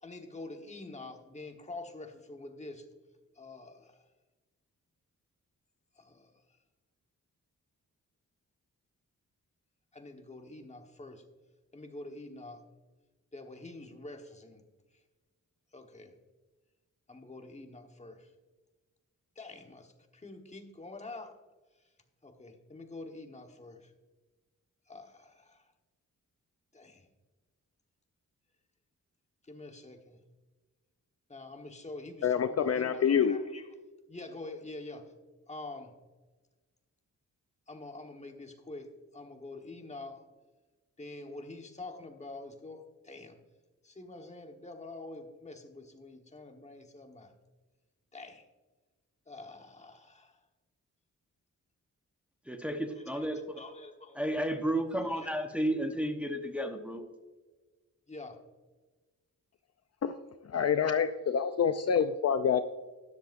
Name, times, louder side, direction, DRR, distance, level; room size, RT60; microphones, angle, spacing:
voice 1, 0.0-2.9 3.4-3.9 6.0-6.3 9.9-11.2 11.7-12.6 13.3-14.6 15.7-16.1 17.1-18.3 19.4-21.3 22.2-23.9 24.9-25.6 26.7-27.0 29.5-30.2 31.3-33.7 34.1-35.1 35.5-35.9 37.7-38.9 39.1-40.2 41.0-43.4 43.8-47.3 48.1-48.4 49.3-50.3 52.9-54.2 54.9-55.3 58.1-58.4, left 2 dB, 20° left, 4 dB, 1.3 m, -46 dB
voice 2, 32.2-33.4 60.0-60.1 60.5-62.6, left 7 dB, 50° left, 9 dB, 0.5 m, -27 dB
voice 3, 52.5-53.6 54.1-57.1, right 1 dB, 5° right, 4 dB, 0.9 m, -32 dB
12.5 x 11.0 x 2.6 m, 1.2 s
wide cardioid pair, 115°, 32 cm